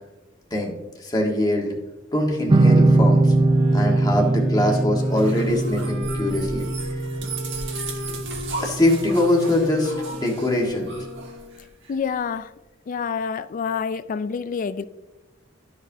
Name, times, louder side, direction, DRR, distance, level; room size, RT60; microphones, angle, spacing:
voice 1, 1.0-1.7 2.1-3.3 3.7-6.7 8.6-10.9, left 1 dB, 20° left, 1.4 m, -22 dB
sound 1, 2.5-9.7, right 2 dB, 25° right, 0.4 m, -21 dB
Wind instrument woodwind instrument, 3.3-11.7, equal, 90° right, 1.2 m, -39 dB
sound 2, 5.0-12.0, right 3 dB, 65° right, 1.4 m, -36 dB
voice 2, 11.9-12.5 12.9-14.8, left 6 dB, 40° left, 0.3 m, -27 dB
12.5 x 4.8 x 2.7 m
head